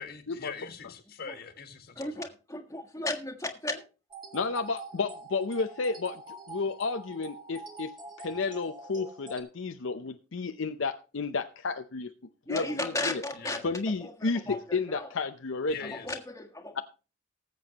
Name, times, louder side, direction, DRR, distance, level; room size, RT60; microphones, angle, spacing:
voice 1, 0.0-2.3 13.3-13.6 15.7-16.2, left 6 dB, 50° left, 1.7 m, -42 dB
voice 2, 2.0-3.9 12.5-15.1 15.8-16.8, left 2 dB, 15° left, 1.5 m, -35 dB
sound 1, 4.1-9.4, right 3 dB, 25° right, 1.9 m, -45 dB
voice 3, 4.3-6.1 6.5-12.1 12.5-13.2 13.6-15.9 16.7-16.8, left 4 dB, 70° left, 0.6 m, -32 dB
19.0 x 7.7 x 2.9 m
head